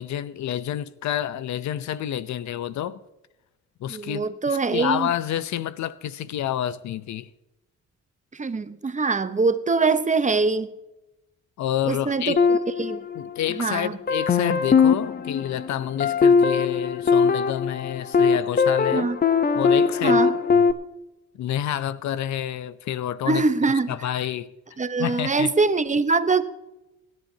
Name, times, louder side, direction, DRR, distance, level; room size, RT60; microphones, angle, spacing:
voice 1, 0.0-3.0 3.8-7.3 11.6-12.4 13.1-19.1 19.5-20.2 20.5-20.7 21.4-23.4 23.9-24.5 25.0-25.5, left 11 dB, 70° left, 0.7 m, -29 dB
voice 2, 3.9-5.1 8.3-10.7 11.9-12.4 12.8-13.0 13.6-13.9 18.9-19.2 20.0-20.3 23.2-23.9 24.8-26.4, right 4 dB, 25° right, 0.9 m, -23 dB
sound 1, 12.4-13.6 14.1-20.7, left 5 dB, 30° left, 0.8 m, -21 dB
25.0 x 10.5 x 2.8 m
cardioid pair, 90°, 30 cm